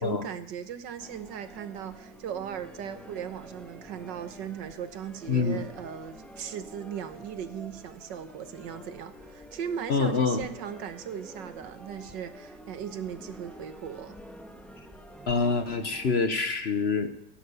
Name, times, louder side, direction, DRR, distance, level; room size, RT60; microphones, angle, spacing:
voice 1, 0.0-14.2, right 8 dB, 85° right, 11 dB, 1.8 m, -38 dB
sound 1, 1.0-16.1, equal, ahead, 1.5 m, -48 dB
voice 2, 5.3-5.6 9.9-10.5 15.3-17.1, left 4 dB, 45° left, 9 dB, 1.0 m, -26 dB
16.5 x 11.0 x 6.9 m, 0.81 s
omnidirectional pair, 1.9 m